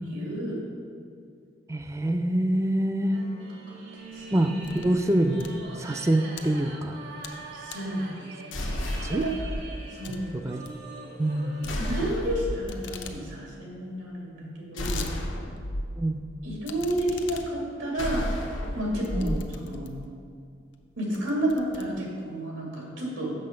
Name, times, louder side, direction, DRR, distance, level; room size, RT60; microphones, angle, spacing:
voice 1, 0.1-0.6 4.0-4.2 7.5-8.1 9.1-9.3 9.9-10.3 11.8-15.1 16.4-18.3 18.7-19.9 21.0-23.3, right 1 dB, 85° right, -3 dB, 2.4 m, -31 dB
voice 2, 1.7-3.2 4.3-4.5 4.8-5.5 5.8-7.0 9.0-9.2 10.3-10.6 11.2-11.5 16.0-16.2 19.1-19.4, right 1 dB, 15° right, 7 dB, 0.4 m, -25 dB
sound 1, 3.1-12.1, right 3 dB, 65° right, 1.2 m, -43 dB
sound 2, 4.0-5.0 5.3-6.4 6.9-7.4 7.7-8.0 8.5-8.9 9.3-9.4 9.7-9.8 10.0-10.2 10.5-10.8 11.6-12.4 12.7-13.2 13.5-13.6 13.8-13.9 14.4-15.1 15.6-15.7 16.6-20.1 20.7-20.8 21.1-22.4, left 6 dB, 70° left, 0.6 m, -43 dB
sound 3, 8.5-9.6 11.6-12.7 14.8-15.8 18.0-19.4, left 1 dB, 90° left, 1.0 m, -31 dB
7.6 x 6.5 x 5.1 m, 2.3 s
head